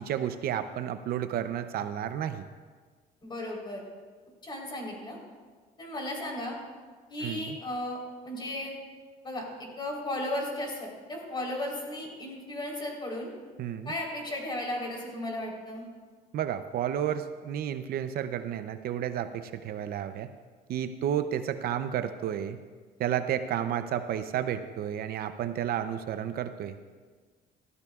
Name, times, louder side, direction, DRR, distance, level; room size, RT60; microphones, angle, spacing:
voice 1, 0.0-2.5 7.2-7.6 13.6-13.9 16.3-20.3 20.7-22.6 23.0-26.8, right 10 dB, 65° right, 10 dB, 0.6 m, -31 dB
voice 2, 3.2-3.8 4.4-5.2 5.8-6.6 7.1-8.0 8.2-8.7 9.2-13.3 13.8-15.9, left 1 dB, 25° left, -1 dB, 3.8 m, -35 dB
17.0 x 14.0 x 2.4 m, 1.5 s
cardioid pair, 110°, 17 cm